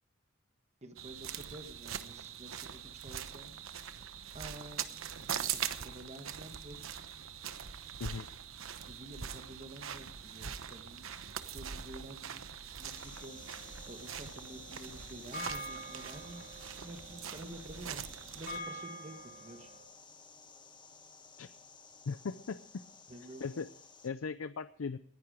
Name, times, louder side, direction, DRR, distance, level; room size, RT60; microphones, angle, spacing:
voice 1, 0.8-3.6 4.3-6.8 8.9-11.1 11.5-13.5 13.9-16.4 16.8-18.0 18.3-19.7 23.1-23.6, right 1 dB, 35° right, 6 dB, 1.2 m, -50 dB
sound 1, 1.0-18.6, right 8 dB, 75° right, 1.0 m, -42 dB
sound 2, 12.8-24.1, left 5 dB, 25° left, 1.5 m, -55 dB
sound 3, 13.2-19.8, equal, 50° left, 4.5 m, -48 dB
voice 2, 22.1-22.6 23.4-23.7 24.0-25.0, left 5 dB, 80° left, 13 dB, 0.5 m, -38 dB
19.5 x 10.5 x 5.0 m, 0.64 s
head